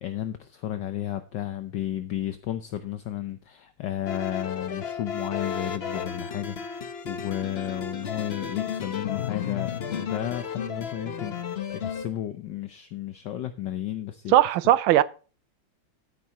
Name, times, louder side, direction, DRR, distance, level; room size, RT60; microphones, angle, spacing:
voice 1, 0.0-14.3, left 12 dB, 65° left, 1.4 m, -33 dB
sound 1, 4.1-12.1, left 7 dB, 50° left, 0.8 m, -33 dB
voice 2, 14.3-15.0, right 13 dB, 80° right, 1.5 m, -18 dB
13.5 x 10.0 x 2.9 m
omnidirectional pair, 2.3 m